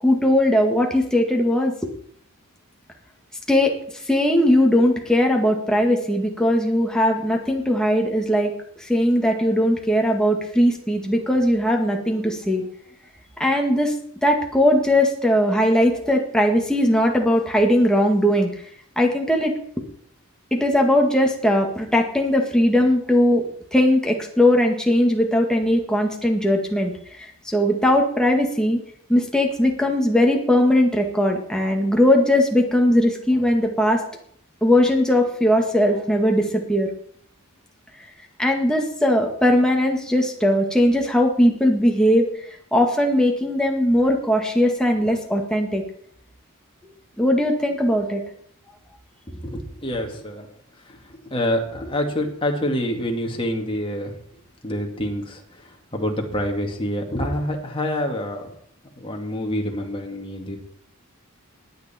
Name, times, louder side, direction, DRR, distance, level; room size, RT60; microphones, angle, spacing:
voice 1, 0.0-1.9 3.5-3.8 4.1-8.5 8.9-12.6 13.4-13.9 14.2-18.5 19.0-19.5 20.5-23.4 23.7-26.9 27.2-28.8 29.1-34.0 34.6-36.9 38.4-42.3 42.7-45.8 47.2-48.2, left 1 dB, 5° left, 1 dB, 1.9 m, -19 dB
voice 2, 49.3-50.5 51.3-54.1 54.6-55.4 55.9-58.5 59.0-60.6, left 1 dB, 25° left, 1 dB, 2.1 m, -26 dB
20.0 x 9.1 x 4.4 m, 0.62 s
head